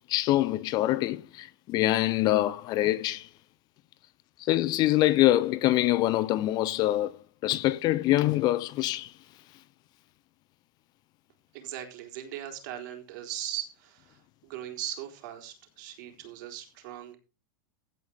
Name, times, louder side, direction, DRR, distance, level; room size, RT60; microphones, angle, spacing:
voice 1, 0.1-3.3 4.5-7.1 7.4-9.1, left 15 dB, 35° left, 0.7 m, -25 dB
voice 2, 11.5-17.2, right 12 dB, 60° right, 4.0 m, -39 dB
16.5 x 5.6 x 5.2 m
supercardioid pair, 145°, 12 cm